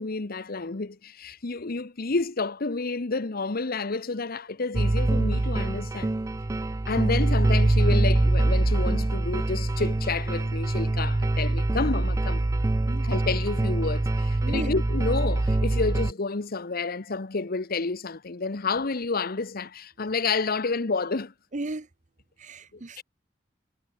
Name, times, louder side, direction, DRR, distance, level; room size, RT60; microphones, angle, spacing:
voice 1, 0.0-6.1 6.9-12.4 13.0-21.3 22.7-23.0, left 3 dB, 50° left, 1.0 m, -30 dB
sound 1, 4.7-16.1, right 2 dB, 15° right, 0.3 m, -24 dB
voice 2, 21.5-21.9 22.4-23.0, right 2 dB, 40° right, 0.9 m, -35 dB
head